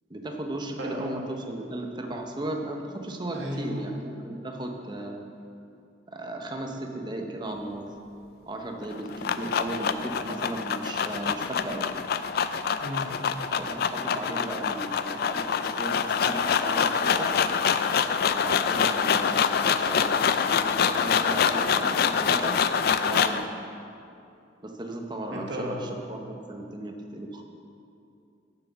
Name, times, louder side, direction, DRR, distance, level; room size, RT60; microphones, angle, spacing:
voice 1, 0.1-5.3 6.1-7.9 8.4-11.9 13.6-17.3 18.3-22.6 23.0-23.4 24.6-27.4, right 1 dB, 25° right, 3 dB, 0.8 m, -36 dB
voice 2, 0.8-1.1 3.3-3.8 12.8-13.1 25.3-25.8, equal, 80° right, -2 dB, 1.7 m, -34 dB
sound 1, 8.8-23.4, left 6 dB, 55° left, 0.3 m, -25 dB
7.4 x 6.1 x 6.9 m, 2.6 s
head